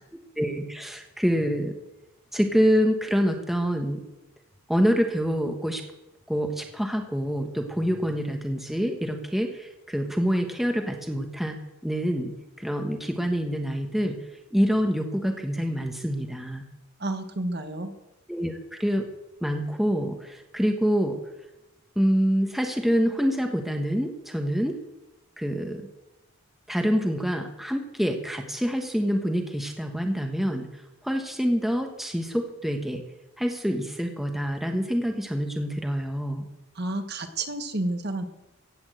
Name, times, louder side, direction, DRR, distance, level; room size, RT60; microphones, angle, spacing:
voice 1, 0.4-1.7 2.3-4.0 4.7-5.8 6.3-11.6 11.8-12.3 12.6-14.2 14.5-16.6 18.3-19.1 19.4-21.2 22.0-24.8 25.4-25.8 26.7-30.7 31.0-33.0 33.4-36.4, equal, ahead, 4 dB, 1.1 m, -26 dB
voice 2, 17.0-17.9 36.7-38.2, right 2 dB, 45° right, 7 dB, 1.4 m, -30 dB
16.0 x 8.8 x 7.6 m, 0.97 s
head